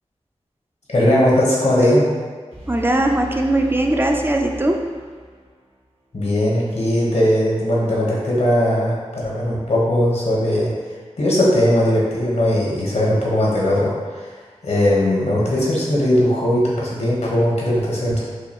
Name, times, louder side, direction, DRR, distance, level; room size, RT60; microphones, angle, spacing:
voice 1, 0.9-2.1 6.1-10.7 11.2-14.3 14.6-18.2, left 1 dB, 75° left, -5 dB, 1.1 m, -19 dB
sound 1, 2.5-5.6, left 1 dB, 60° right, 1.1 m, -36 dB
voice 2, 2.7-4.8, right 1 dB, 20° right, 2 dB, 0.4 m, -19 dB
4.8 x 2.3 x 2.9 m, 1.5 s
cardioid pair, 40°, 11 cm